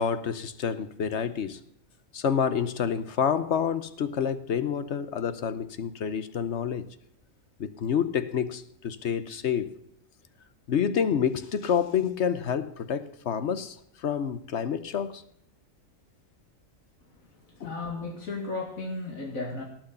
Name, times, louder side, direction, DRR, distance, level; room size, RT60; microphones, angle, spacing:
voice 1, 0.0-1.6 2.1-6.9 7.6-9.8 10.7-15.2 17.6-17.7, left 7 dB, 60° left, 1.0 m, -28 dB
voice 2, 17.1-19.6, left 3 dB, 80° left, 2.5 m, -35 dB
18.0 x 6.3 x 6.9 m
omnidirectional pair, 1.4 m